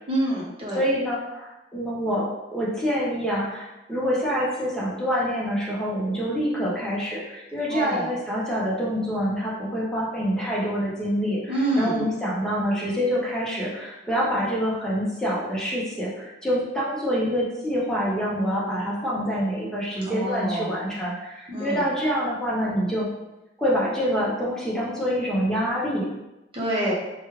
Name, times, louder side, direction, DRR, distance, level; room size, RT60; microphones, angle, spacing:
voice 1, 0.1-0.8 7.7-8.1 11.5-12.0 20.1-20.8 21.5-21.8 26.5-26.9, right 1 dB, 30° right, -5 dB, 0.8 m, -26 dB
voice 2, 0.7-23.1 23.6-26.1, equal, 5° left, -7 dB, 0.7 m, -26 dB
3.1 x 2.2 x 3.1 m, 0.97 s
head